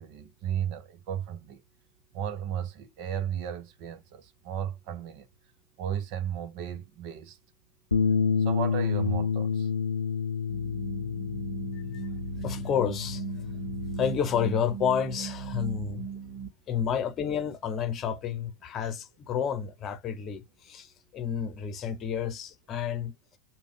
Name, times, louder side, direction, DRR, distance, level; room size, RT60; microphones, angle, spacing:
voice 1, 0.0-1.6 2.1-5.3 5.8-7.4 8.4-9.7, right 9 dB, 50° right, 0.7 m, -34 dB
Bass guitar, 7.9-14.2, left 6 dB, 85° left, 0.4 m, -29 dB
sound 1, 10.5-16.5, right 7 dB, 10° right, 1.5 m, -38 dB
voice 2, 12.4-13.2 13.7-16.3 16.7-23.1, left 8 dB, 35° left, 0.8 m, -30 dB
3.4 x 2.3 x 3.6 m
figure-of-eight pair, 85°, 0 cm